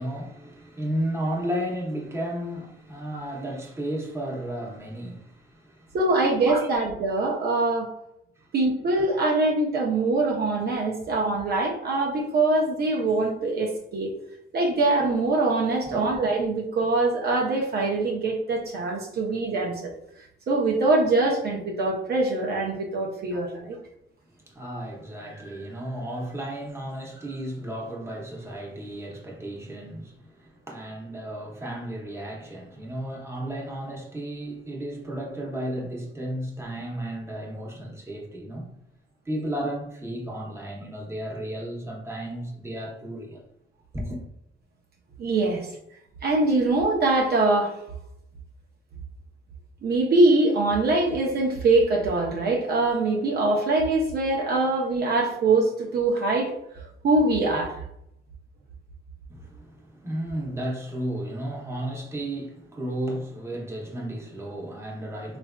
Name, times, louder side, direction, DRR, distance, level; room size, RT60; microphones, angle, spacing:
voice 1, 0.0-5.9 6.5-6.7 8.4-8.5 15.8-16.1 23.3-23.4 24.5-38.7 39.3-43.4 43.9-44.2 59.3-65.4, right 1 dB, 15° right, 0.8 m, -33 dB
voice 2, 5.9-7.9 8.5-14.1 14.5-19.9 20.5-23.8 45.2-45.7 46.2-47.8 49.8-57.7, right 2 dB, 55° right, 0.6 m, -23 dB
3.2 x 2.5 x 2.2 m
cardioid pair, 90°, 20 cm